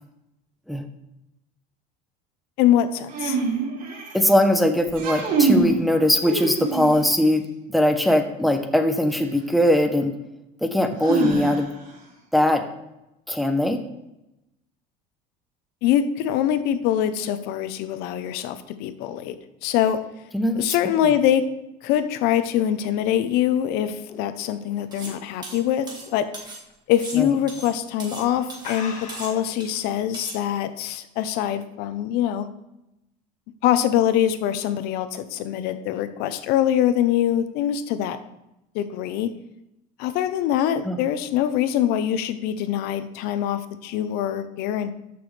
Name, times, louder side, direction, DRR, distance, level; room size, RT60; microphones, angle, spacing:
voice 1, 2.6-3.4 15.8-19.3 19.6-20.0 20.6-21.5 21.8-26.3 26.9-32.5 33.6-38.2 38.7-39.3 40.0-44.9, left 10 dB, 65° left, 11 dB, 0.7 m, -23 dB
sound 1, 3.1-4.3 4.9-5.8 6.2-7.1 9.1-9.2 11.0-11.9, right 4 dB, 50° right, 2.7 m, -24 dB
voice 2, 4.1-7.4 7.7-10.1 10.6-11.7 12.3-12.6 13.3-13.8 20.3-20.8 27.2-27.4 40.8-41.1, left 1 dB, ahead, 5 dB, 0.8 m, -20 dB
sound 2, 22.5-25.6 26.0-26.3 26.7-26.8 27.6-27.8 28.1-28.2 28.6-29.6, left 5 dB, 45° left, 1.6 m, -39 dB
sound 3, 24.9-25.2 25.4-26.6 26.9-28.3 28.5-28.8 29.1-29.8 30.1-30.4, right 3 dB, 25° right, 1.9 m, -38 dB
13.5 x 6.0 x 3.3 m, 0.89 s
cardioid pair, 140°, 17 cm